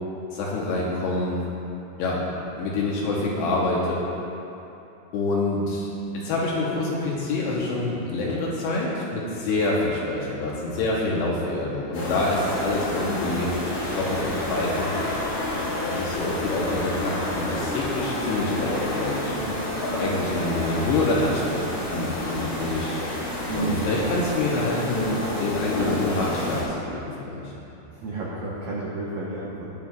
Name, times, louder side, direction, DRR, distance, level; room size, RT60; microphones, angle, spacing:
voice 1, 0.3-1.4 2.0-2.2 2.5-4.0 5.1-5.9 6.1-13.5 14.0-15.1 15.9-19.3 19.8-22.9 23.5-27.4, left 2 dB, 75° left, -4 dB, 2.8 m, -26 dB
sound 1, 11.9-26.6, left 1 dB, 55° left, 3.0 m, -29 dB
voice 2, 23.4-23.8 27.9-29.7, right 2 dB, 90° right, -6 dB, 1.9 m, -32 dB
20.0 x 7.4 x 2.4 m, 2.9 s
omnidirectional pair, 5.7 m